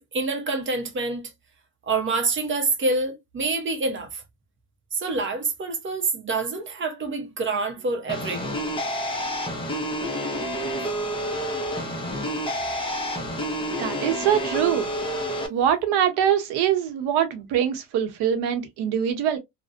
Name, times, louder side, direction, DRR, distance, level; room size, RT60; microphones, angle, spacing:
voice 1, 0.1-1.2 1.9-4.2 4.9-8.6, right 3 dB, 30° right, 0.6 m, -26 dB
sound 1, 8.1-15.5, equal, 15° left, 0.6 m, -29 dB
voice 2, 13.8-14.9 15.5-19.4, right 9 dB, 80° right, 0.8 m, -23 dB
2.5 x 2.1 x 2.4 m
cardioid pair, 125°, 39 cm